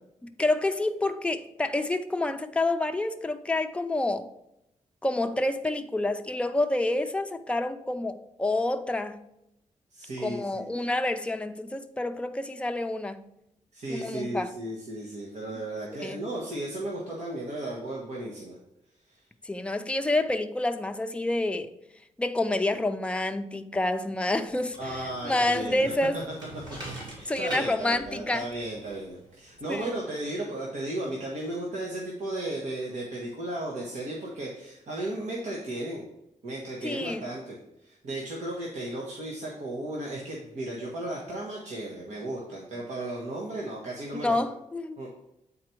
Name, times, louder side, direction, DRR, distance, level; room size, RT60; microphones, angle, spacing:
voice 1, 0.4-4.3 5.0-9.2 10.2-13.2 13.9-14.5 16.0-16.2 19.4-21.7 22.2-26.2 27.3-28.5 29.7-29.9 36.8-37.2 44.2-45.0, left 2 dB, 10° left, 0.5 m, -28 dB
voice 2, 9.9-10.7 13.7-18.6 19.1-19.2 24.8-26.2 27.1-36.0 36.4-44.4 45.0-45.1, right 1 dB, 65° right, 1.5 m, -35 dB
sound 1, 24.5-29.9, right 1 dB, 35° right, 3.1 m, -44 dB
8.6 x 4.2 x 4.5 m
wide cardioid pair, 140°, 13 cm